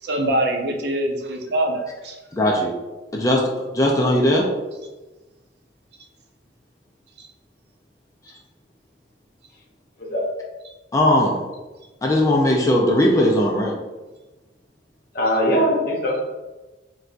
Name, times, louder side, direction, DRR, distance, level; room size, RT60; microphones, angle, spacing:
voice 1, 0.0-2.2 7.2-7.3, right 1 dB, 60° right, 2 dB, 0.5 m, -24 dB
voice 2, 2.3-2.7 3.1-3.4 3.7-4.4 10.9-11.3 12.0-13.7, left 1 dB, 15° left, -2 dB, 0.3 m, -18 dB
voice 3, 15.1-16.3, equal, 50° left, -2 dB, 0.7 m, -21 dB
4.0 x 2.3 x 2.4 m, 1.1 s
head